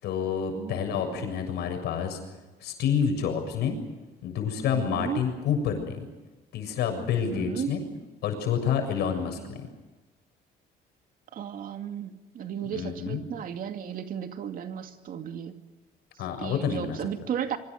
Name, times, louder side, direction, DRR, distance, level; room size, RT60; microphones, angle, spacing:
voice 1, 0.0-2.2 2.6-3.8 4.2-6.1 6.5-7.8 8.2-9.7 12.6-13.2 16.2-17.1, left 7 dB, 75° left, 7.1 m, -28 dB
voice 2, 0.6-1.4 4.7-5.2 7.3-7.7 9.4-9.6 11.3-15.6 16.4-17.6, right 8 dB, 55° right, 2.4 m, -35 dB
26.0 x 24.5 x 6.6 m
cardioid pair, 110°, 17 cm